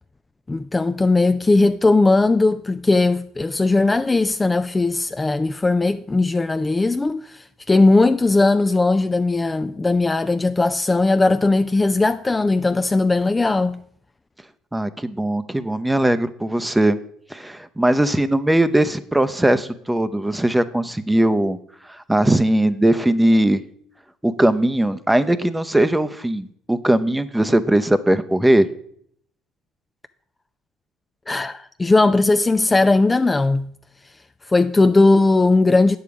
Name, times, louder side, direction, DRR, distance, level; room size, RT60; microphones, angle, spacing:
voice 1, 0.5-13.8 31.3-33.7 34.5-36.0, left 3 dB, 20° left, 0.4 m, -18 dB
voice 2, 14.7-17.0 17.3-21.6 21.9-23.6 24.2-28.7, right 1 dB, 10° right, 0.7 m, -19 dB
9.1 x 7.0 x 4.8 m
hypercardioid pair, 70°, 0 cm